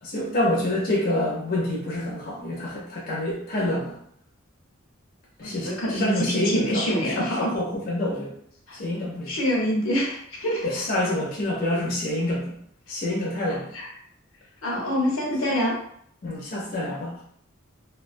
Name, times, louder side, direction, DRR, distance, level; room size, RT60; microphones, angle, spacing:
voice 1, 0.0-4.0 5.4-8.3 8.7-9.4 10.6-12.5 12.9-13.7 16.2-17.2, left 1 dB, 45° left, -4 dB, 0.5 m, -27 dB
voice 2, 5.4-7.5 8.7-8.8 9.3-10.9 13.7-13.9 14.6-15.7, equal, 80° left, -2 dB, 0.8 m, -26 dB
2.2 x 2.2 x 2.5 m, 0.66 s
head